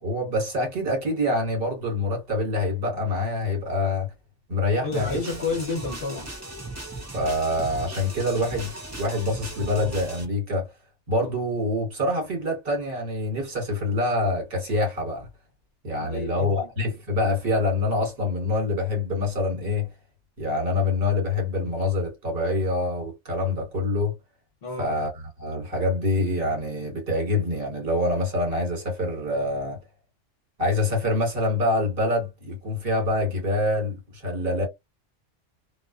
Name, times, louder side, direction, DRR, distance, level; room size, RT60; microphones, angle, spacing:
voice 1, 0.0-4.1 4.5-5.0 7.1-10.7 11.1-15.3 15.8-19.9 20.4-24.1 24.8-25.1 25.4-29.8 30.6-34.7, left 2 dB, 45° right, 1.4 m, -25 dB
voice 2, 4.8-6.3 16.1-16.7 24.6-24.9, left 3 dB, 55° left, 0.9 m, -30 dB
sound 1, 4.9-10.2, right 2 dB, 15° right, 0.6 m, -37 dB
2.4 x 2.2 x 2.4 m
omnidirectional pair, 1.3 m